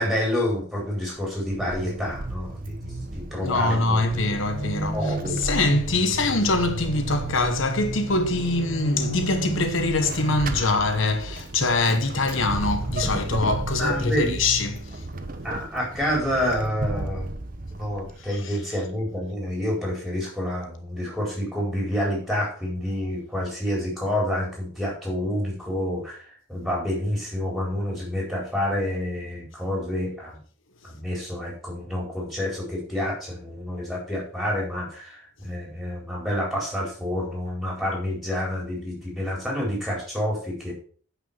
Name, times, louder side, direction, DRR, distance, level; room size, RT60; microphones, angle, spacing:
voice 1, 0.0-4.2 4.9-5.4 13.8-14.3 15.4-17.4 17.8-26.2 26.5-30.4 30.9-40.7, left 1 dB, ahead, 4.6 m, -28 dB
Vehicle / Accelerating revving vroom / Squeak, 1.2-18.4, right 2 dB, 45° right, 0.9 m, -32 dB
voice 2, 3.4-15.4, left 2 dB, 80° left, 1.2 m, -24 dB
9.8 x 5.9 x 5.9 m
head